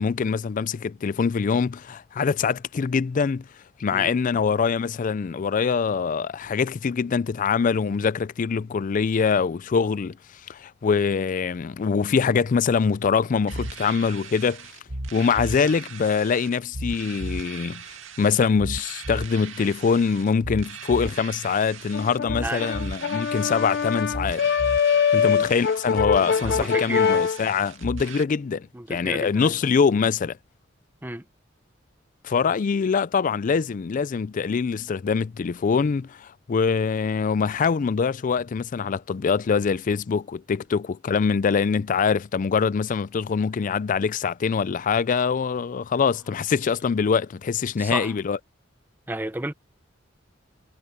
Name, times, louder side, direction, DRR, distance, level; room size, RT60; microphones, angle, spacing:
voice 1, 0.0-3.4 3.8-10.2 10.5-14.7 15.1-17.8 18.2-24.5 25.1-30.4 32.2-48.4, left 5 dB, 40° left, 0.4 m, -24 dB
sound 1, 13.5-28.2, right 2 dB, 80° right, 2.2 m, -36 dB
Brass instrument, 21.9-27.4, left 7 dB, 60° left, 0.8 m, -23 dB
voice 2, 25.2-25.5 26.2-27.3 28.7-29.5 31.0-31.2 47.8-48.1 49.1-49.5, right 1 dB, 10° right, 1.0 m, -32 dB
head